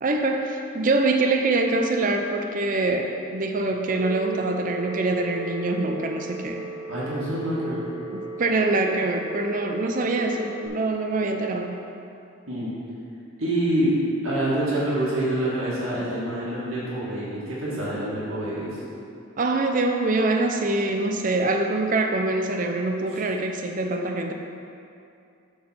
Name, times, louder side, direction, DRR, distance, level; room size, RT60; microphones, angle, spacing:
voice 1, 0.0-6.7 8.1-11.8 19.4-24.3, right 2 dB, 40° right, 4 dB, 0.5 m, -24 dB
Telephone, 3.9-10.7, right 3 dB, 5° left, 1.0 m, -37 dB
voice 2, 6.9-7.8 12.5-12.7 13.4-13.9 14.2-18.8, right 1 dB, 70° right, -8 dB, 1.9 m, -26 dB
8.6 x 3.9 x 5.7 m, 2.6 s
head